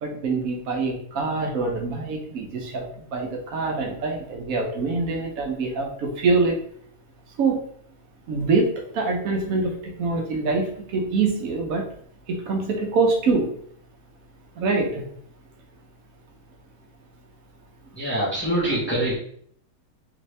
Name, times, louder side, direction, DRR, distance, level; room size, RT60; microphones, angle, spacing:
voice 1, 0.0-2.9 3.1-6.6 7.4-7.6 8.3-9.7 10.0-10.7 10.9-11.9 12.3-13.5 14.6-15.0, right 3 dB, 75° right, 2 dB, 1.1 m, -24 dB
voice 2, 17.9-19.2, right 1 dB, 10° left, -6 dB, 0.9 m, -24 dB
3.1 x 2.6 x 3.1 m, 0.63 s
omnidirectional pair, 1.5 m